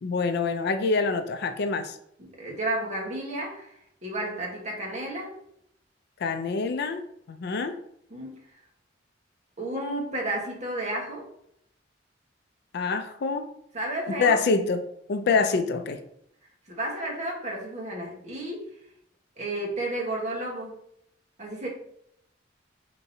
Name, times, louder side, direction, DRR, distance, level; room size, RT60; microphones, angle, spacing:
voice 1, 0.0-2.0 6.2-7.8 12.7-13.5 14.1-16.0, left 4 dB, 60° left, 8 dB, 0.4 m, -26 dB
voice 2, 2.2-5.3 8.1-8.4 9.6-11.3 13.7-14.4 16.7-18.7 19.4-20.7 21.4-21.7, right 1 dB, 40° right, -2 dB, 1.2 m, -32 dB
4.3 x 3.7 x 2.7 m, 0.73 s
head